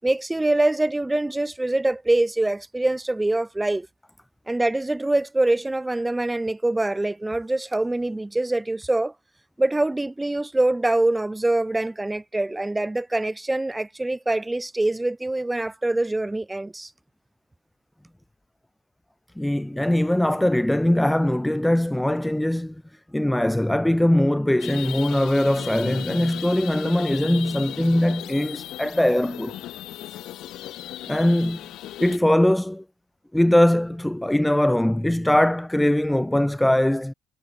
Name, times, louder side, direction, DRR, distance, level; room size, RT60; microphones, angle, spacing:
voice 1, 0.0-3.9 4.5-9.1 9.6-16.9, right 2 dB, 10° right, 4.7 m, -24 dB
voice 2, 19.4-22.8 23.1-29.6 31.1-31.6 32.0-32.8 33.3-37.1, left 1 dB, 5° left, 0.5 m, -21 dB
sound 1, 24.6-32.2, left 14 dB, 60° left, 2.5 m, -37 dB
supercardioid pair, 90°, 0 cm